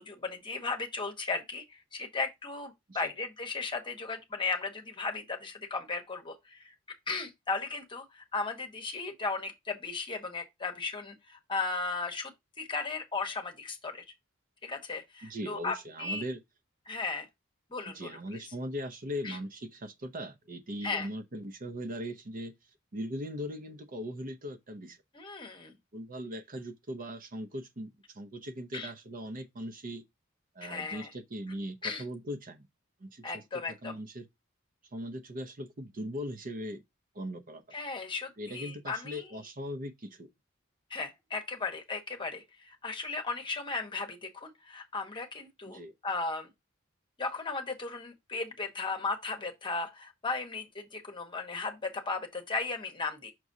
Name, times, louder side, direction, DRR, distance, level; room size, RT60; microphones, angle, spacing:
voice 1, 0.0-6.7 7.1-14.0 14.6-16.2 16.9-17.3 17.7-18.4 19.2-19.4 20.8-21.1 25.1-25.8 28.7-28.9 30.6-31.1 31.8-32.0 33.2-34.0 37.7-39.3 40.9-46.5 47.2-53.3, left 4 dB, 25° left, 1.2 m, -36 dB
voice 2, 15.2-16.4 17.9-22.5 22.9-25.0 25.9-30.0 30.6-32.7 33.0-33.2 33.8-34.2 34.9-36.8 37.1-37.6 38.4-40.3 45.7-45.9, equal, 40° right, 0.7 m, -39 dB
6.0 x 5.9 x 2.7 m
head